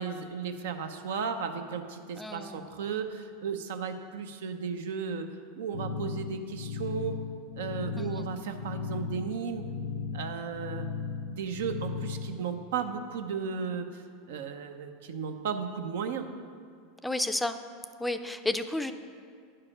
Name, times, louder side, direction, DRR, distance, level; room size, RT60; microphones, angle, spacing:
voice 1, 0.0-5.3 5.6-7.2 7.6-9.7 10.1-10.9 11.3-14.0 14.3-16.3, right 6 dB, 75° right, 7 dB, 0.7 m, -35 dB
voice 2, 2.2-2.8 8.0-8.3 17.0-17.6 18.0-18.9, left 2 dB, 5° left, 9 dB, 0.4 m, -32 dB
sound 1, 5.7-12.5, left 5 dB, 80° left, 0.5 m, -37 dB
10.0 x 4.8 x 6.0 m, 2.1 s
hypercardioid pair, 105°, 0 cm